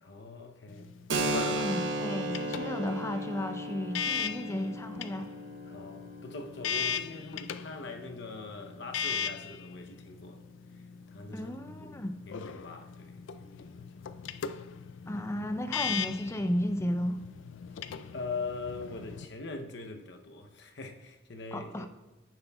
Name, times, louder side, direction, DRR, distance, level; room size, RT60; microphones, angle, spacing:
voice 1, 0.0-1.0 5.7-10.4 10.7-14.2 18.1-21.9, left 3 dB, 65° left, 0.8 m, -42 dB
sound 1, 0.7-19.2, left 7 dB, 80° left, 0.4 m, -39 dB
Keyboard (musical), 1.1-8.5, right 1 dB, 75° right, 0.8 m, -36 dB
voice 2, 1.6-5.3 11.3-12.1 15.1-17.2 21.5-21.9, equal, 15° left, 0.5 m, -33 dB
10.0 x 8.9 x 2.3 m
head